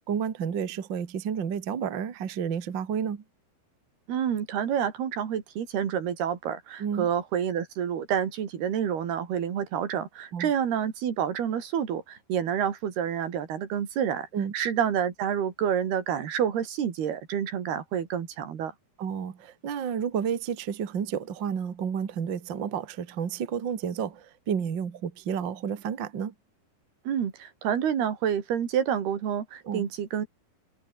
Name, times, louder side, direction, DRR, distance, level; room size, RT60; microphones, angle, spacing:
voice 1, 0.1-3.2 6.8-7.1 10.3-10.5 14.3-14.5 19.0-26.3 29.6-29.9, right 7 dB, 40° right, 1.8 m, -31 dB
voice 2, 4.1-14.3 14.5-18.7 27.1-30.3, right 8 dB, 80° right, 4.8 m, -28 dB
omnidirectional pair, 4.5 m